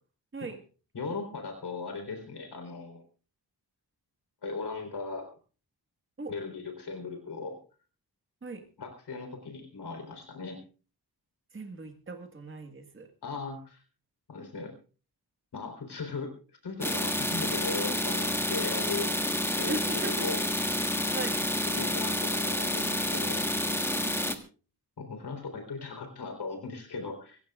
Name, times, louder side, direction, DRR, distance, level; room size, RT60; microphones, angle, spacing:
voice 1, 0.9-3.0 4.4-5.3 6.3-7.6 8.8-10.6 13.2-13.8 14.3-14.7 15.5-16.3 16.6-19.2 19.6-19.8 20.2-20.4 21.7-23.6 25.0-27.4, left 4 dB, 75° left, 4 dB, 4.0 m, -38 dB
voice 2, 11.5-13.1 19.7-20.3 21.1-21.4 23.8-24.4, right 3 dB, 30° right, 5 dB, 1.7 m, -38 dB
sound 1, 16.8-24.3, left 1 dB, 5° left, 1.4 m, -29 dB
25.0 x 15.5 x 2.5 m, 0.37 s
wide cardioid pair, 145°, 40 cm